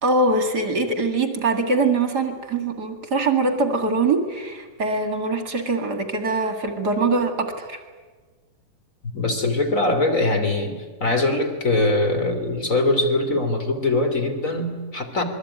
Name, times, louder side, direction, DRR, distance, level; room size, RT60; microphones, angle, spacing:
voice 1, 0.0-7.8, right 3 dB, 35° right, 7 dB, 2.4 m, -23 dB
voice 2, 9.1-15.2, left 2 dB, 25° left, 6 dB, 2.8 m, -22 dB
27.0 x 22.5 x 9.7 m, 1.4 s
omnidirectional pair, 4.0 m